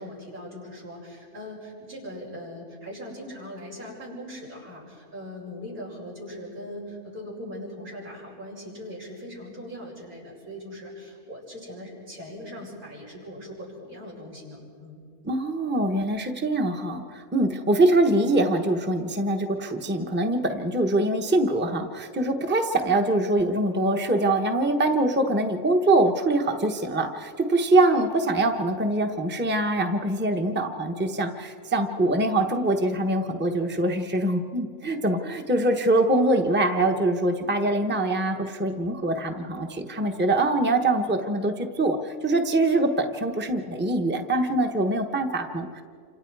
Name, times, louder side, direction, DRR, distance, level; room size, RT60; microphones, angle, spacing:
voice 1, 0.0-15.0, equal, 90° right, -5 dB, 7.5 m, -40 dB
voice 2, 15.2-45.8, right 2 dB, 10° right, 4 dB, 1.0 m, -24 dB
28.0 x 26.5 x 4.8 m, 2.2 s
omnidirectional pair, 1.5 m